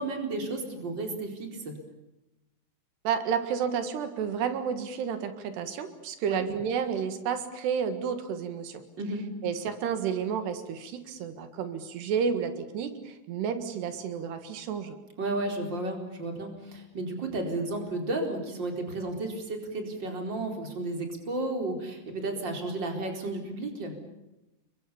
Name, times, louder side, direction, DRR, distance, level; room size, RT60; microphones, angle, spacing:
voice 1, 0.0-1.7 6.2-6.4 9.0-9.3 15.2-23.9, right 2 dB, 25° right, 3 dB, 4.6 m, -33 dB
voice 2, 3.1-8.8 9.4-15.0, right 7 dB, 85° right, 9 dB, 3.9 m, -31 dB
30.0 x 22.5 x 7.1 m, 0.97 s
omnidirectional pair, 4.6 m